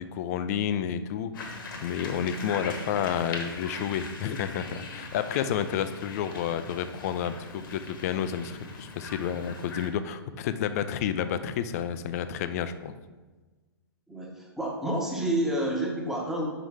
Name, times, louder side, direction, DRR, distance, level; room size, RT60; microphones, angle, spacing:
voice 1, 0.0-12.9, left 9 dB, 40° left, 11 dB, 0.4 m, -30 dB
sound 1, 1.3-9.9, left 3 dB, 55° left, 1.2 m, -41 dB
voice 2, 14.1-16.5, right 1 dB, 5° right, -1 dB, 1.1 m, -29 dB
5.8 x 5.0 x 4.8 m, 1.3 s
figure-of-eight pair, 120°, 13 cm